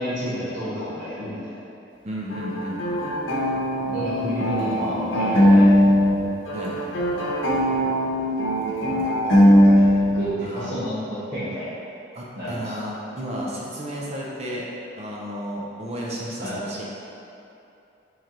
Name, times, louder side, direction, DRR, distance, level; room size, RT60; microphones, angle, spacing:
voice 1, 0.0-1.6 3.8-5.9 8.2-8.3 8.8-11.7 12.3-12.7 16.4-16.6, equal, 60° right, -14 dB, 1.1 m, -31 dB
voice 2, 2.0-3.1 6.5-6.8 10.4-10.7 12.1-14.7 15.0-16.8, equal, 35° right, -4 dB, 0.5 m, -32 dB
sound 1, 2.3-6.2 6.5-10.3, equal, 85° left, 0.8 m, -19 dB
4.3 x 3.2 x 3.8 m, 2.8 s
head